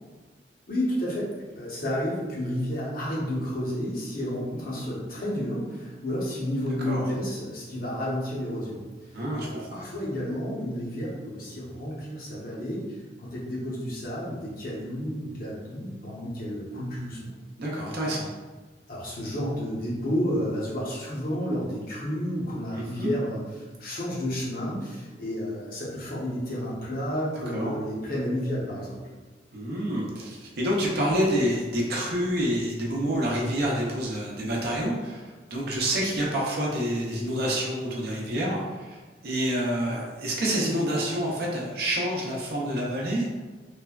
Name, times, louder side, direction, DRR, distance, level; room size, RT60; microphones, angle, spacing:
voice 1, 0.7-1.3 1.5-8.8 9.1-12.9 13.2-17.3 18.9-29.0, equal, 55° left, -5 dB, 0.8 m, -31 dB
voice 2, 9.1-9.9 17.6-18.3 22.7-23.1 27.5-27.7 29.5-43.3, equal, 60° right, -3 dB, 0.5 m, -28 dB
3.1 x 2.1 x 2.3 m, 1.3 s
head